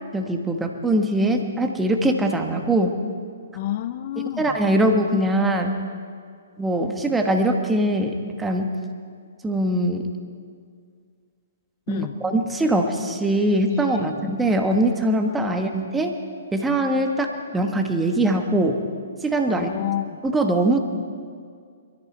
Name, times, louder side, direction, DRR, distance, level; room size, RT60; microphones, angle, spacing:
voice 1, 0.1-3.0 4.4-5.8 6.6-8.7 9.4-10.1 11.9-16.2 16.5-18.8 19.2-19.7 20.2-20.8, right 1 dB, 10° right, 4 dB, 1.3 m, -22 dB
voice 2, 3.6-4.5 11.9-12.1 14.0-14.2 19.5-20.2, left 13 dB, 45° left, 12 dB, 0.5 m, -29 dB
22.5 x 14.0 x 4.4 m, 2.1 s
figure-of-eight pair, 125°, 0 cm